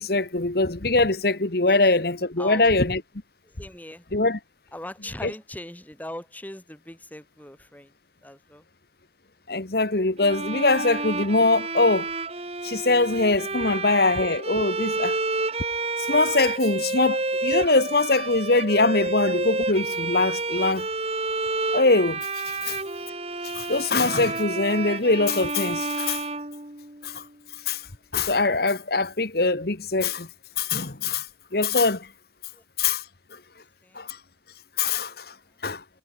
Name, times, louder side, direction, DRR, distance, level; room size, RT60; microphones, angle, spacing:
voice 1, 0.0-3.0 4.1-4.4 5.2-5.3 9.5-12.1 12.6-15.2 16.0-20.9 21.7-22.8 23.4-26.2 27.0-27.2 27.6-27.9 28.1-30.3 30.6-31.3 31.5-32.1 32.8-33.1 33.3-33.4 33.9-34.2 34.8-35.3 35.6-35.8, left 3 dB, 55° left, 1.5 m, -23 dB
voice 2, 2.4-2.7 3.4-4.0 4.7-7.9 8.2-8.6 22.6-22.8 32.5-32.6 33.8-34.1, left 1 dB, 10° left, 3.1 m, -40 dB
Bowed string instrument, 10.2-27.2, right 3 dB, 35° right, 3.7 m, -30 dB
head